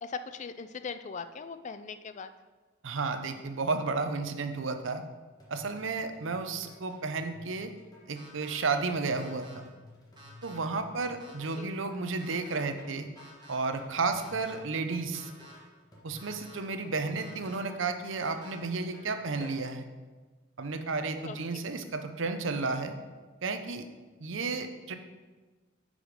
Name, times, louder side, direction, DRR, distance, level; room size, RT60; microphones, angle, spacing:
voice 1, 0.0-2.3 11.5-11.8 21.2-21.6, left 5 dB, 35° left, 11 dB, 0.3 m, -40 dB
voice 2, 2.8-5.0 5.5-7.7 8.1-9.7 10.4-13.1 13.5-15.3 16.0-19.8 20.6-22.9 23.4-23.9 24.2-24.9, right 4 dB, 70° right, 8 dB, 0.7 m, -32 dB
sound 1, 5.4-19.6, left 2 dB, 20° left, 1.5 m, -54 dB
sound 2, 8.2-8.5 9.2-9.5 10.2-10.5 11.2-11.6 12.2-12.6 13.2-13.6 14.2-14.5 15.1-15.5 16.2-16.5 17.2-17.6 18.2-18.5, right 1 dB, 20° right, 1.3 m, -52 dB
8.7 x 5.0 x 5.1 m, 1.3 s
head